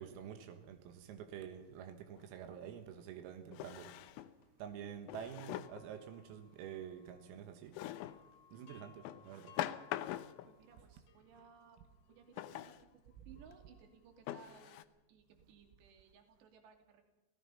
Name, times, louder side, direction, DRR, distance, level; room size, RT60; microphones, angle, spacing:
voice 1, 0.0-3.9 4.6-7.8 8.5-9.5, right 8 dB, 90° right, 4.2 m, -48 dB
Drawer open or close, 2.2-2.3 3.5-4.4 5.1-5.9 7.7-8.2 9.0-10.5 12.4-12.8 13.5-13.6 14.3-14.8, left 13 dB, 80° left, 3.4 m, -43 dB
sound 1, 5.2-7.5 7.8-14.1, left 8 dB, 60° left, 2.9 m, -65 dB
voice 2, 10.4-11.8 12.1-12.9 13.3-17.0, right 6 dB, 60° right, 4.5 m, -61 dB
26.5 x 17.5 x 5.6 m
omnidirectional pair, 5.9 m